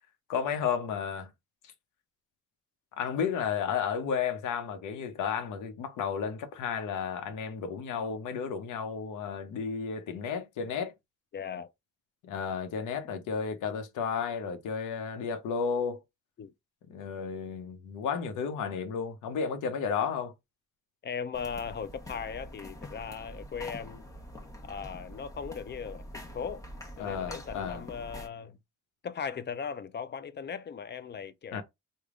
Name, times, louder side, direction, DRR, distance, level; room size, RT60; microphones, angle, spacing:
voice 1, 0.3-1.3 3.0-10.9 12.2-16.0 16.9-20.3 27.0-27.8 31.5-31.6, left 6 dB, 85° left, 0.8 m, -32 dB
voice 2, 11.3-11.7 16.4-16.5 21.0-24.0 24.6-26.7 27.0-28.6 29.0-31.6, left 6 dB, 35° left, 0.5 m, -38 dB
sound 1, 21.3-28.3, equal, 10° left, 1.0 m, -45 dB
3.4 x 2.2 x 3.6 m
cardioid pair, 90°, 30 cm